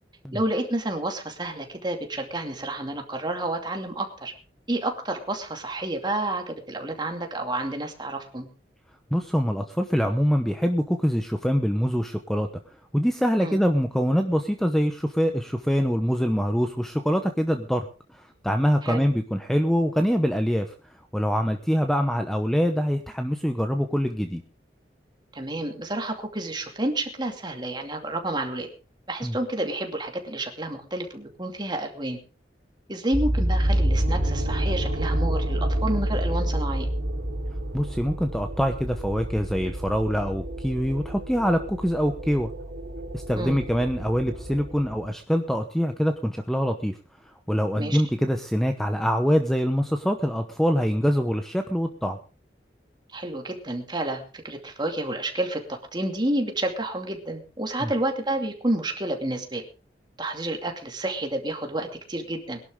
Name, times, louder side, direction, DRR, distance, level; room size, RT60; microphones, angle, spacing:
voice 1, 0.3-4.3 4.7-8.5 13.4-13.6 18.8-19.0 25.3-28.7 29.1-32.2 32.9-36.9 43.4-43.6 47.8-48.0 53.1-59.6 60.2-62.6, right 1 dB, 25° right, 4 dB, 2.5 m, -30 dB
voice 2, 9.1-12.5 12.9-17.9 18.4-20.7 21.1-24.4 29.2-29.3 37.7-42.5 43.1-46.9 47.5-52.2 57.8-57.9, equal, ahead, 6 dB, 0.9 m, -24 dB
sound 1, 33.1-45.1, right 1 dB, 75° right, 3.7 m, -28 dB
21.5 x 11.5 x 3.7 m, 0.34 s
head